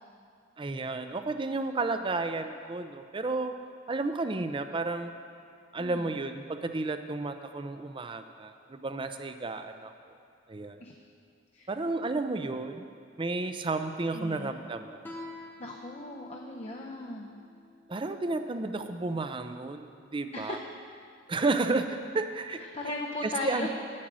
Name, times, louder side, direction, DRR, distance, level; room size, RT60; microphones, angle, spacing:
voice 1, 0.6-3.5 3.9-5.1 5.7-9.9 10.5-10.8 11.7-12.9 13.2-15.0 17.9-20.6 21.3-22.6 23.4-23.7, right 3 dB, 25° right, 8 dB, 0.5 m, -32 dB
voice 2, 5.8-6.1 10.8-10.9 11.5-11.7 14.1-14.6 15.6-17.3 20.3-20.6 22.6-23.7, left 2 dB, 35° left, 0 dB, 0.7 m, -37 dB
Guitar, 15.0-18.3, left 2 dB, 10° left, 1.1 m, -48 dB
8.8 x 8.8 x 6.2 m, 2.3 s
head